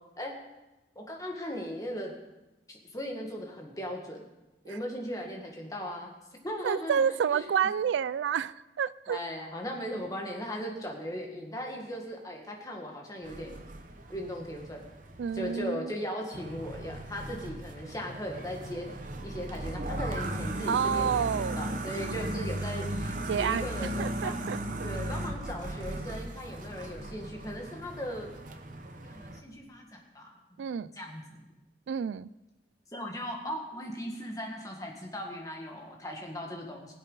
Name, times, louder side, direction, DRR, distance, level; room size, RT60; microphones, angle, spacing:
voice 1, 0.9-2.1 2.7-4.2 4.6-6.1 6.4-7.0 7.3-7.5 9.1-13.6 14.1-14.8 15.3-18.9 19.2-21.3 21.6-24.5 24.8-28.3 29.0-31.5 32.9-36.9, equal, 20° left, 0 dB, 1.7 m, -38 dB
voice 2, 6.6-9.2 15.2-15.9 20.7-21.8 23.3-24.6 30.6-30.9 31.9-32.3, right 7 dB, 85° right, 19 dB, 0.3 m, -29 dB
sound 1, 13.2-15.6 16.3-29.4, right 1 dB, 45° right, 0.9 m, -37 dB
19.5 x 8.0 x 3.9 m, 1.0 s
head